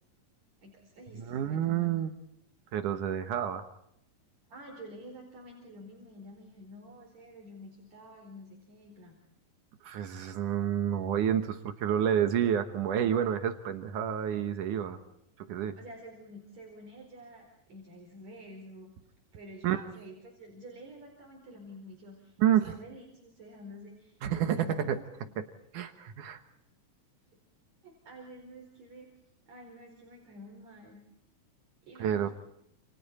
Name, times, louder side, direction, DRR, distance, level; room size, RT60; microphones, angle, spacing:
voice 1, 0.6-1.9 4.5-9.2 15.7-18.9 19.3-25.4 27.8-29.1 29.5-31.0 31.8-32.3, equal, 55° right, 0 dB, 5.9 m, -49 dB
voice 2, 1.2-2.1 2.7-3.6 9.8-15.0 15.5-15.7 19.6-19.9 22.4-22.7 24.2-25.0 25.4-25.5 25.7-26.4 32.0-32.3, right 9 dB, 75° right, 8 dB, 2.7 m, -29 dB
29.0 x 29.0 x 4.3 m, 0.76 s
omnidirectional pair, 3.7 m